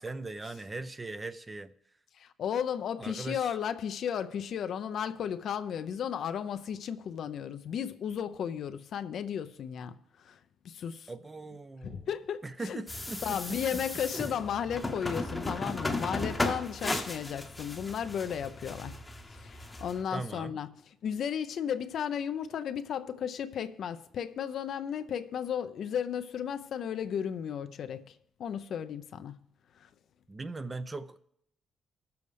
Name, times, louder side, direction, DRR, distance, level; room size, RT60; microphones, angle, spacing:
voice 1, 0.0-1.7 3.0-3.6 11.1-12.1 12.4-13.8 14.1-14.4 20.1-20.6 30.3-31.2, right 2 dB, 20° right, 0.5 m, -40 dB
voice 2, 2.2-10.4 10.6-11.1 11.8-12.8 13.2-19.0 19.3-29.4 29.8-29.9, left 8 dB, 65° left, 0.6 m, -34 dB
sound 1, 12.9-20.0, left 2 dB, 15° left, 0.9 m, -36 dB
20.5 x 7.0 x 3.3 m
cardioid pair, 90°, 0 cm